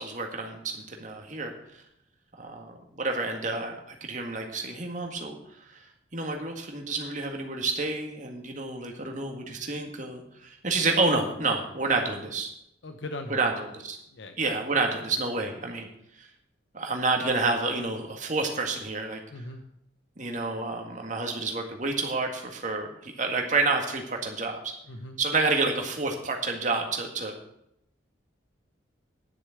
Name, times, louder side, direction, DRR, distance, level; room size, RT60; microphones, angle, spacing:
voice 1, 0.0-1.5 2.4-5.4 5.7-5.8 6.1-12.5 13.3-14.0 14.4-15.9 16.2-16.3 16.7-19.2 20.2-24.7 25.2-27.3, right 3 dB, 40° right, 2 dB, 1.9 m, -29 dB
voice 2, 12.8-13.4 14.1-14.4 19.3-19.6 24.8-25.2, left 2 dB, 70° left, 6 dB, 0.9 m, -39 dB
11.0 x 6.6 x 7.9 m, 0.79 s
head